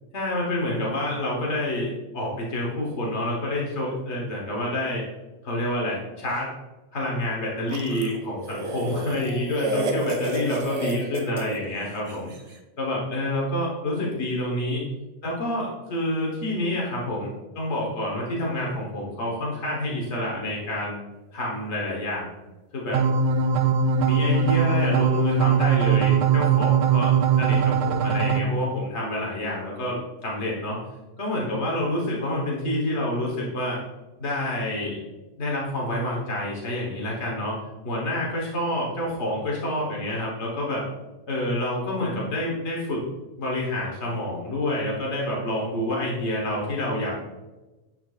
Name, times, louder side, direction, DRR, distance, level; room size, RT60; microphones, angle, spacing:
voice 1, 0.1-5.0 5.4-6.5 6.9-12.3 12.8-14.8 15.2-17.3 17.5-21.0 21.3-22.3 22.7-23.0 24.0-30.8 31.2-33.8 34.2-35.0 35.4-37.6 37.8-40.8 41.3-43.0 43.4-47.1, left 1 dB, 80° left, -3 dB, 1.5 m, -28 dB
sound 1, 7.7-12.4, right 2 dB, 40° right, 0.7 m, -31 dB
sound 2, 22.9-28.4, right 6 dB, 75° right, 0.8 m, -21 dB
10.0 x 4.5 x 2.4 m, 1.1 s
omnidirectional pair, 1.1 m